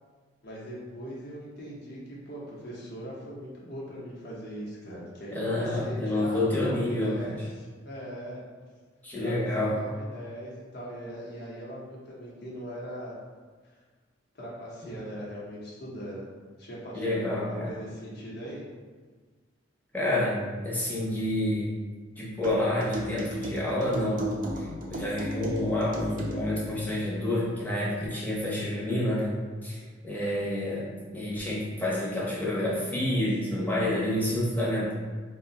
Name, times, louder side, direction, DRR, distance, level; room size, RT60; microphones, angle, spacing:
voice 1, 0.4-8.4 9.1-13.1 14.3-16.2 16.6-18.6 29.8-29.9 30.3-30.4, equal, 55° left, -5 dB, 0.9 m, -40 dB
voice 2, 5.3-7.4 9.0-9.9 16.9-17.7 19.9-21.7 22.2-34.9, left 1 dB, 10° left, -7 dB, 0.7 m, -29 dB
sound 1, 22.4-26.7, right 1 dB, 45° right, 0.5 m, -36 dB
2.6 x 2.2 x 3.9 m, 1.4 s
head